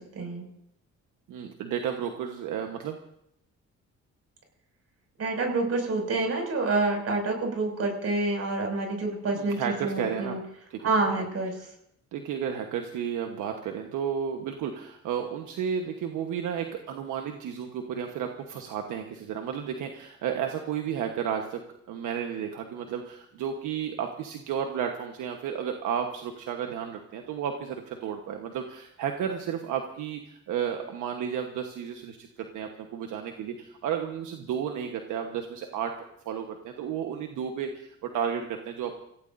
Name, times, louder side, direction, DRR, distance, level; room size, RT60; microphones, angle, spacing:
voice 1, 1.3-3.0 9.4-10.4 10.7-10.8 11.2-11.3 11.6-11.7 12.1-21.6 21.9-39.0, right 8 dB, 90° right, 4 dB, 1.3 m, -32 dB
voice 2, 5.2-10.4 10.8-11.6, right 3 dB, 55° right, 2 dB, 6.2 m, -27 dB
26.5 x 16.5 x 2.7 m, 0.74 s
cardioid pair, 90°, 30 cm